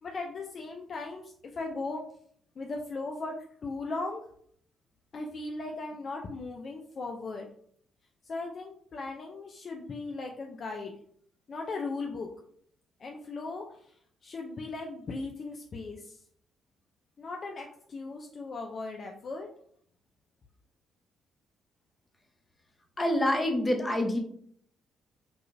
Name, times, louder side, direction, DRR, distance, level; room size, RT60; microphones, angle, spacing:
voice 1, 0.0-2.0 2.6-3.3 3.6-4.2 5.1-7.5 8.2-11.0 11.5-12.3 13.0-14.0 14.2-16.2 17.2-19.5, left 3 dB, 50° left, 2 dB, 0.4 m, -37 dB
voice 2, 23.0-24.2, left 1 dB, 25° left, 3 dB, 0.8 m, -26 dB
4.7 x 2.4 x 2.5 m, 0.64 s
cardioid pair, 90°, 0 cm